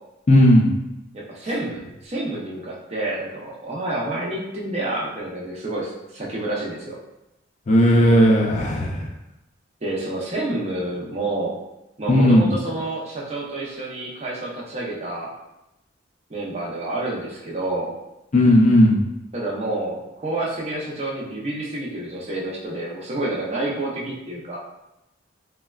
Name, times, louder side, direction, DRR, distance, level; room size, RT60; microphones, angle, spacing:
voice 1, 0.3-0.6 7.7-9.1 12.1-12.4 18.3-19.0, left 1 dB, 35° left, -1 dB, 0.4 m, -15 dB
voice 2, 1.1-7.0 9.8-11.5 12.0-15.3 16.3-17.9 19.3-24.6, right 2 dB, 35° right, -4 dB, 0.5 m, -29 dB
3.2 x 2.1 x 2.3 m, 0.92 s
head